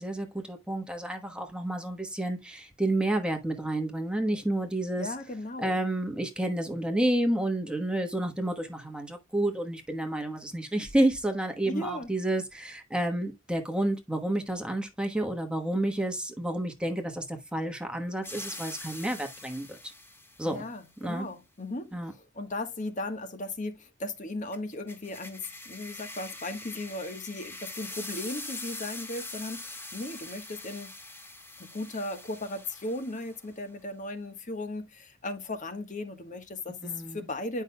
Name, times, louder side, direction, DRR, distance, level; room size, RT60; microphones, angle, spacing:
voice 1, 0.0-5.1 5.6-19.9 20.4-20.6 21.0-21.3 21.9-22.1 36.8-37.2, right 1 dB, 5° right, 1.2 m, -30 dB
voice 2, 5.0-5.8 11.6-12.1 20.5-30.9 31.6-37.6, left 2 dB, 40° left, 1.3 m, -36 dB
sound 1, 18.2-20.6 24.5-33.5, left 2 dB, 10° left, 1.8 m, -43 dB
10.5 x 5.7 x 2.2 m
head